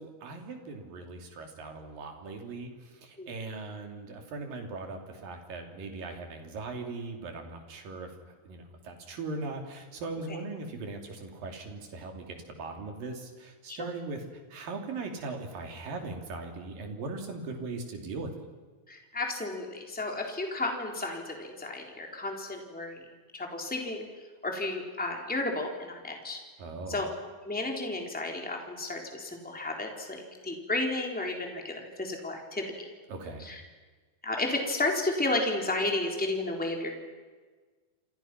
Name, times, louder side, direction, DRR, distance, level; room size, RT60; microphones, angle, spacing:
voice 1, 0.0-8.1 8.4-14.2 14.5-18.3 26.6-27.0 33.1-33.5, right 3 dB, 80° right, 3 dB, 4.8 m, -39 dB
voice 2, 18.9-23.0 23.3-24.1 24.4-26.4 26.9-27.1 27.4-32.6 33.4-33.6 34.2-36.9, left 2 dB, 5° left, 1 dB, 3.3 m, -32 dB
29.0 x 27.5 x 6.1 m, 1.4 s
omnidirectional pair, 3.9 m